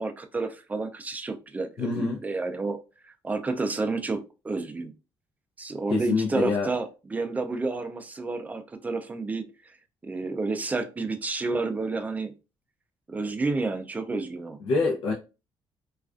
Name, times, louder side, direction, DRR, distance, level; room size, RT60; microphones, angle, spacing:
voice 1, 0.0-2.8 3.0-4.9 5.6-9.8 10.0-12.3 13.1-14.6, right 3 dB, 15° right, 0.3 m, -30 dB
voice 2, 1.8-2.2 5.9-6.7 14.6-15.1, left 4 dB, 75° left, 0.5 m, -25 dB
2.4 x 2.2 x 2.3 m
cardioid pair, 120°, 10 cm